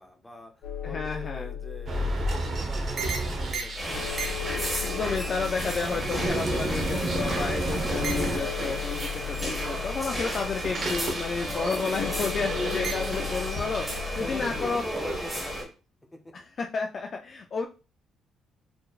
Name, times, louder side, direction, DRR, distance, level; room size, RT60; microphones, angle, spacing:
voice 1, 0.0-3.9 14.2-15.7 16.1-16.2, left 1 dB, 10° left, 3 dB, 0.7 m, -42 dB
sound 1, 0.6-14.6, left 8 dB, 70° left, 1.4 m, -37 dB
voice 2, 0.8-1.5 4.8-14.8 16.3-17.7, left 4 dB, 35° left, 2 dB, 0.4 m, -31 dB
sound 2, 1.9-9.8 10.2-13.9, right 2 dB, 40° right, 0.8 m, -32 dB
sound 3, 3.8-15.6, equal, 10° right, 1.3 m, -33 dB
4.3 x 3.1 x 2.4 m, 0.33 s
cardioid pair, 140°, 0 cm